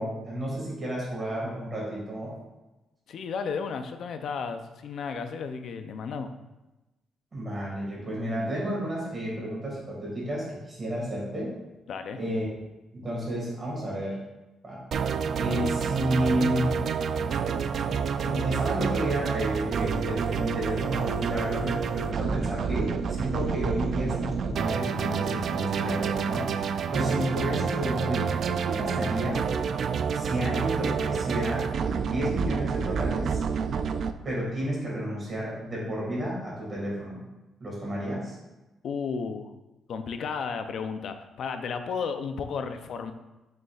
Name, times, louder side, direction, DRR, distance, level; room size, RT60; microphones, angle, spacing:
voice 1, 0.0-2.3 7.3-11.5 12.2-12.5 12.9-14.2 14.6-14.8 15.3-16.7 18.2-28.3 28.6-29.4 30.1-31.7 32.0-33.4 34.2-37.2 37.6-38.4, equal, 25° right, -4 dB, 1.9 m, -31 dB
voice 2, 3.1-6.3 11.9-12.2 38.8-39.5 39.9-43.1, left 5 dB, 55° left, 8 dB, 0.5 m, -33 dB
sound 1, 14.9-34.1, right 6 dB, 50° right, 0.3 m, -28 dB
6.8 x 6.4 x 2.4 m, 1.0 s
cardioid pair, 145°, 0 cm